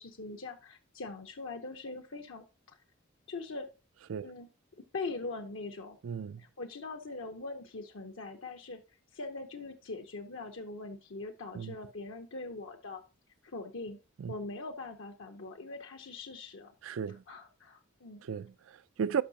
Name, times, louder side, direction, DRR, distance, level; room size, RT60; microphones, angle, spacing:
voice 1, 0.0-2.8 3.3-3.7 4.2-4.5 4.9-6.0 6.4-8.8 9.1-13.0 13.4-14.0 14.3-16.7 17.1-18.2, left 3 dB, 70° left, 0.8 m, -42 dB
voice 2, 6.0-6.4 11.5-11.8 14.2-14.3 16.8-17.2 18.2-19.2, right 7 dB, 75° right, 0.4 m, -35 dB
12.0 x 5.4 x 2.8 m
head